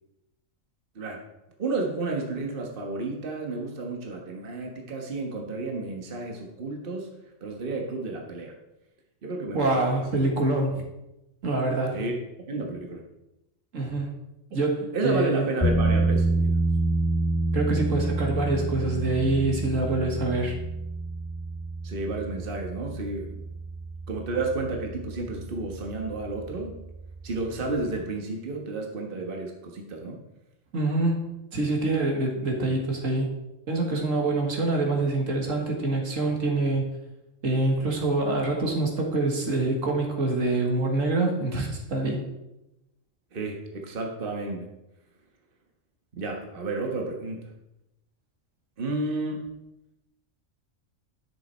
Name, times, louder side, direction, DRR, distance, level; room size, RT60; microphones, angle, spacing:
voice 1, 1.6-7.1 7.4-8.5 9.2-10.0 11.9-12.2 12.5-13.0 14.9-16.5 21.8-23.4 24.1-26.8 27.2-30.2 43.3-44.7 46.1-47.4 48.8-49.5, right 3 dB, 45° right, 1 dB, 1.5 m, -31 dB
voice 2, 9.5-10.8 11.4-12.0 13.7-14.1 14.5-15.5 17.5-20.6 30.7-31.3 31.5-33.3 33.7-36.9 37.4-42.2, right 2 dB, 75° right, 1 dB, 2.1 m, -25 dB
sound 1, 15.6-27.9, right 2 dB, 10° left, 3.1 m, -29 dB
11.5 x 6.7 x 4.3 m, 0.92 s
omnidirectional pair, 1.3 m